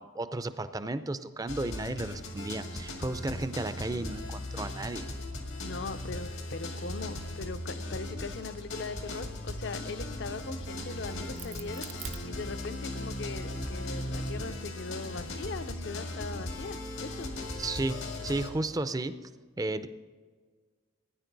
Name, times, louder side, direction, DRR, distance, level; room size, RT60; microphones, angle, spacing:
voice 1, 0.0-5.0 17.6-19.1 19.6-19.9, right 2 dB, 20° right, 12 dB, 0.4 m, -33 dB
sound 1, 1.5-18.5, left 1 dB, 85° left, 2.0 m, -38 dB
voice 2, 5.6-11.9 12.2-17.3, left 3 dB, 60° left, 11 dB, 0.6 m, -40 dB
Crack, 10.3-13.0 13.5-15.2, right 6 dB, 80° right, 0.8 m, -47 dB
17.0 x 9.7 x 3.9 m, 1.5 s
head